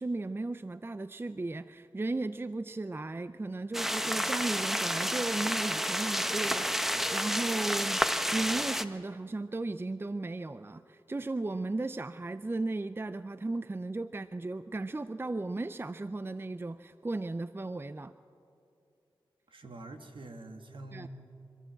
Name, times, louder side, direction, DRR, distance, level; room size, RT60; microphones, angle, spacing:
voice 1, 0.0-8.0 8.3-18.1 20.9-21.1, right 2 dB, 25° right, 13 dB, 0.5 m, -35 dB
sound 1, 3.7-8.8, equal, 5° right, 1.0 m, -30 dB
voice 2, 19.5-21.1, right 2 dB, 65° right, 5 dB, 2.0 m, -46 dB
27.0 x 12.5 x 7.7 m, 2.7 s
cardioid pair, 50°, 9 cm